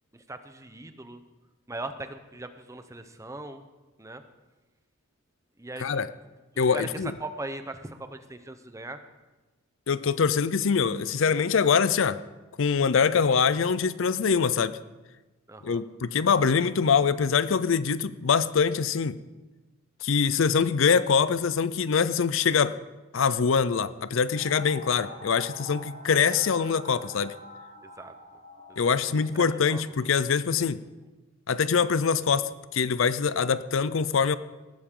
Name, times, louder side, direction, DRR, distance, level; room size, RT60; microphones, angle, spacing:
voice 1, 0.1-1.2 1.7-3.7 4.0-4.2 5.6-6.0 6.5-9.0 15.5-15.8 27.8-28.1 28.7-28.8 29.2-29.3 29.7-29.8, right 2 dB, 15° right, 9 dB, 0.8 m, -39 dB
voice 2, 6.6-7.1 9.9-12.2 12.6-14.8 15.6-19.2 20.0-22.8 23.1-27.3 28.8-30.8 31.5-34.4, left 6 dB, 65° left, 15 dB, 0.5 m, -24 dB
sound 1, 24.3-30.5, equal, 55° right, 4.4 m, -46 dB
19.0 x 13.5 x 3.8 m, 1.2 s
head